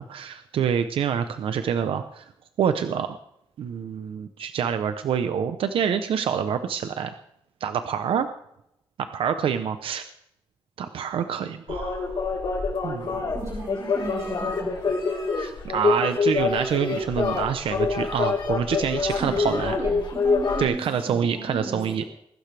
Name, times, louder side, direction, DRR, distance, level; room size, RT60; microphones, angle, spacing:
voice 1, 0.0-2.2 2.6-3.1 3.6-7.1 7.6-8.3 9.1-10.0 10.8-12.3 12.8-13.2 15.4-19.8 20.6-22.0, right 8 dB, 90° right, 9 dB, 0.8 m, -26 dB
sound 1, 11.7-20.6, left 4 dB, 65° left, 4.5 m, -26 dB
voice 2, 13.3-14.9 19.0-22.1, right 2 dB, 35° right, -4 dB, 5.2 m, -35 dB
21.0 x 12.0 x 3.4 m, 0.77 s
wide cardioid pair, 115°, 9 cm